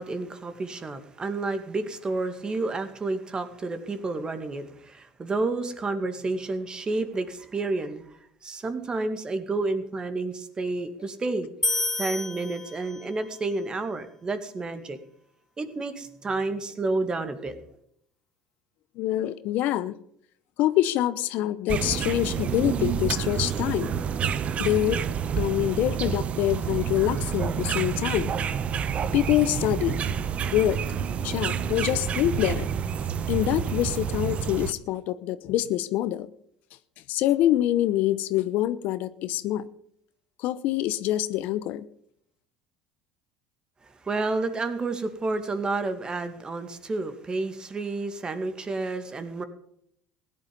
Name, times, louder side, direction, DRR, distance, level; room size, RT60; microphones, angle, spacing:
voice 1, 0.0-8.0 8.4-11.5 12.0-15.0 15.6-17.7 43.8-49.4, right 3 dB, 30° right, 2.2 m, -30 dB
sound 1, 11.6-13.2, left 3 dB, 15° left, 0.5 m, -29 dB
voice 2, 19.0-19.9 20.6-23.9 24.6-25.0 25.4-28.3 29.1-30.0 30.5-30.8 31.2-32.7 33.3-36.3 37.1-39.7 40.4-41.9, left 13 dB, 65° left, 0.8 m, -25 dB
sound 2, 21.7-34.7, right 7 dB, 45° right, 1.0 m, -28 dB
16.5 x 11.0 x 5.4 m
supercardioid pair, 80°, 3 cm